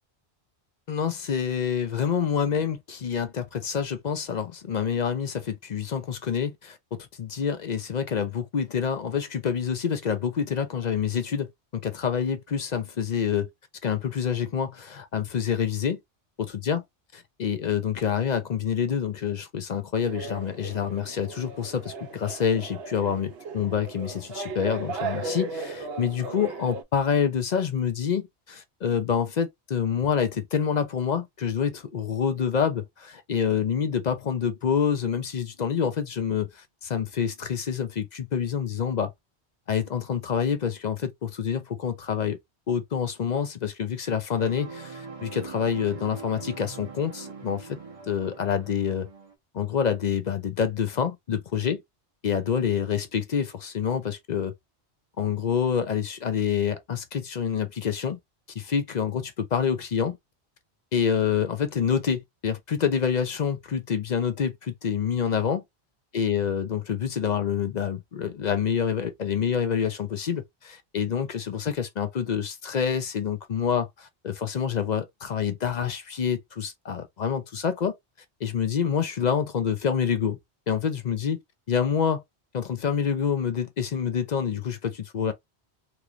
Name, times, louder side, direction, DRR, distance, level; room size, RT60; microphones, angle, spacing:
voice 1, 0.9-6.8 7.2-13.5 13.8-16.0 16.6-16.8 17.1-39.1 39.7-42.4 42.7-47.8 48.1-49.1 49.5-51.8 52.2-54.5 55.2-58.2 58.6-60.2 60.9-65.6 66.1-78.0 78.4-80.4 80.7-81.4 81.7-82.2 82.5-85.3, left 7 dB, 50° left, 0.6 m, -27 dB
sound 1, 20.0-26.8, right 4 dB, 70° right, 0.8 m, -36 dB
sound 2, 44.4-49.3, right 4 dB, 40° right, 0.6 m, -42 dB
3.1 x 3.0 x 2.4 m
omnidirectional pair, 1.1 m